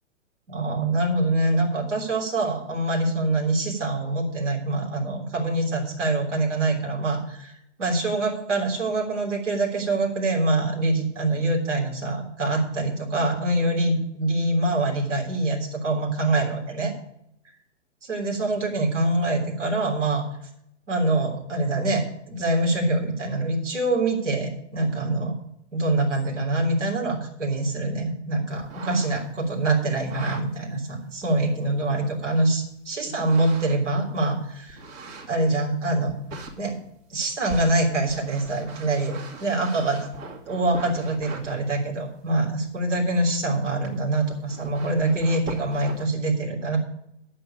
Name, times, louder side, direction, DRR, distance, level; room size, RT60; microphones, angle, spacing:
voice 1, 0.5-16.9 18.0-20.3 20.9-25.4 25.7-34.8 35.3-36.1 36.6-36.8 37.1-40.1 40.5-46.8, right 2 dB, 70° right, -1 dB, 3.5 m, -25 dB
sound 1, 28.6-29.5 30.0-30.4 31.2-31.3 33.2-33.9 34.7-35.5 36.1-36.5 37.5-41.6 43.8-43.9 44.3-46.1, right 2 dB, 45° right, 2.5 m, -39 dB
8.6 x 7.1 x 8.5 m, 0.76 s
figure-of-eight pair, 110°, 37 cm